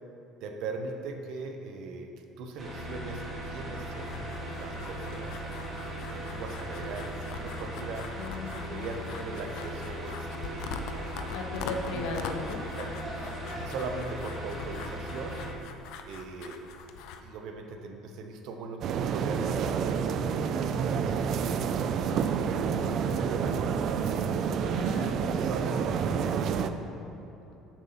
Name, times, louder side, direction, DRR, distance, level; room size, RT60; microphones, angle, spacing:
voice 1, 0.4-4.2 4.5-5.4 6.1-8.1 8.6-11.5 11.9-12.1 12.8-12.9 13.5-15.4 16.1-16.7 17.2-21.6 22.2-23.6 24.1-26.8, right 3 dB, 60° right, 5 dB, 0.9 m, -40 dB
sound 1, 2.6-15.5, equal, 20° right, 1.6 m, -38 dB
sound 2, 4.0-17.2, left 5 dB, 70° left, 0.6 m, -43 dB
voice 2, 8.2-9.0 11.3-12.6 24.7-25.2, left 3 dB, 85° left, 1 dB, 1.3 m, -36 dB
sound 3, 18.8-26.7, right 6 dB, 45° right, 0.4 m, -28 dB
7.3 x 7.0 x 5.7 m, 3.0 s
cardioid pair, 165°, 0 cm